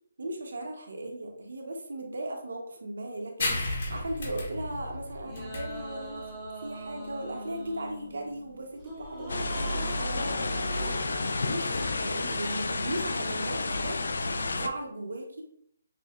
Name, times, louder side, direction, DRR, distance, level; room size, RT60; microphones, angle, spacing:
voice 1, 0.2-6.3 6.6-14.0 14.5-15.4, right 1 dB, 75° right, 2 dB, 0.9 m, -37 dB
sound 1, 3.4-10.5, left 2 dB, 45° left, 0.9 m, -36 dB
sound 2, 5.2-11.5, right 1 dB, 5° right, 0.6 m, -42 dB
sound 3, 9.3-14.7, left 3 dB, 70° left, 0.3 m, -30 dB
6.0 x 2.1 x 2.4 m, 0.65 s
hypercardioid pair, 180°, 0 cm